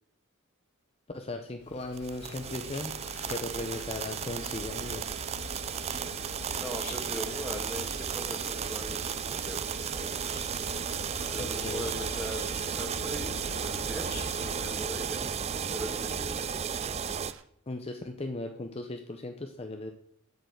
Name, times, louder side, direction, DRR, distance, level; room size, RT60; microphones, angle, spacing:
voice 1, 1.1-2.9 3.3-5.0 11.4-11.9 17.7-19.9, left 2 dB, 25° left, 5 dB, 0.7 m, -37 dB
Insect, 1.6-14.9, left 6 dB, 90° left, 0.5 m, -46 dB
sound 1, 1.9-17.3, right 7 dB, 30° right, 0.4 m, -34 dB
sound 2, 2.7-17.4, right 7 dB, 60° right, 0.8 m, -53 dB
voice 2, 6.5-9.7 9.9-10.3 11.3-14.1 14.4-15.3 15.7-16.5, equal, ahead, 3 dB, 1.6 m, -40 dB
7.9 x 6.7 x 8.1 m, 0.68 s
head